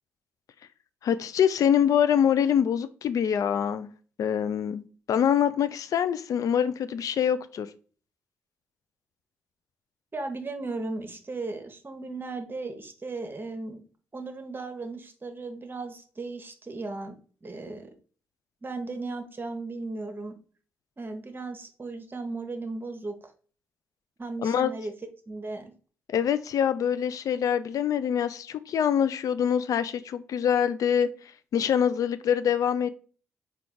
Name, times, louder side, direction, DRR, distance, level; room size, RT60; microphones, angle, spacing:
voice 1, 1.0-3.9 4.2-7.7 24.4-24.7 26.1-31.1 31.5-32.9, left 8 dB, 60° left, 0.4 m, -25 dB
voice 2, 10.1-13.8 14.1-17.2 17.4-17.9 18.6-20.4 21.0-23.2 24.2-24.9 25.3-25.7, right 3 dB, 30° right, 0.9 m, -36 dB
4.4 x 2.3 x 3.7 m
hypercardioid pair, 40°, 7 cm